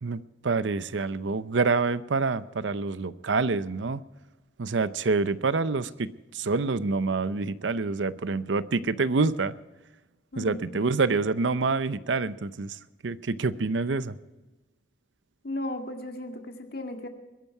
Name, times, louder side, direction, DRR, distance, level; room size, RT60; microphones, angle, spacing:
voice 1, 0.0-4.0 4.6-9.5 10.4-14.2, right 4 dB, 80° right, 15 dB, 0.6 m, -27 dB
voice 2, 10.3-10.8 15.4-17.1, left 1 dB, 55° left, 4 dB, 1.9 m, -35 dB
21.5 x 11.0 x 4.7 m, 1.1 s
head